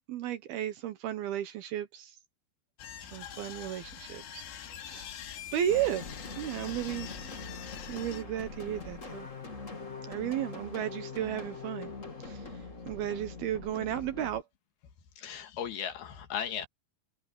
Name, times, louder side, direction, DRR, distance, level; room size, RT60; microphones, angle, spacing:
voice 1, 0.1-2.2 3.1-4.4 4.8-5.2 5.5-6.0 6.4-7.1 7.9-9.3 10.1-11.9 12.2-12.5 12.9-14.4, right 11 dB, 70° right, 2.7 m, -34 dB
sound 1, 2.8-8.2, left 10 dB, 90° left, 4.8 m, -45 dB
sound 2, 5.7-14.4, left 4 dB, 25° left, 2.1 m, -43 dB
voice 2, 15.2-16.7, left 8 dB, 65° left, 3.4 m, -36 dB
omnidirectional pair, 5.2 m